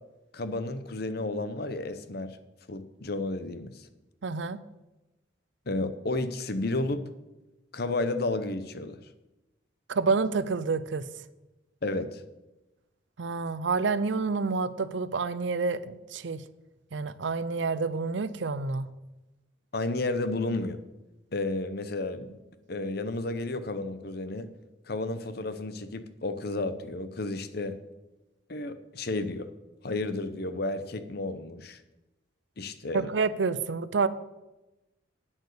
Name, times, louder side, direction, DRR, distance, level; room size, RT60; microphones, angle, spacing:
voice 1, 0.3-2.4 2.7-3.9 5.7-7.1 7.7-9.1 11.8-12.2 19.7-20.8 21.3-22.3 22.7-24.5 24.9-27.8 28.5-29.5 29.8-31.8 32.6-33.1, left 2 dB, 50° left, 11 dB, 0.8 m, -32 dB
voice 2, 4.2-4.6 9.9-11.1 13.2-16.4 16.9-18.9 32.9-34.1, right 4 dB, 65° right, 15 dB, 0.5 m, -28 dB
8.9 x 7.9 x 6.7 m, 1.0 s
head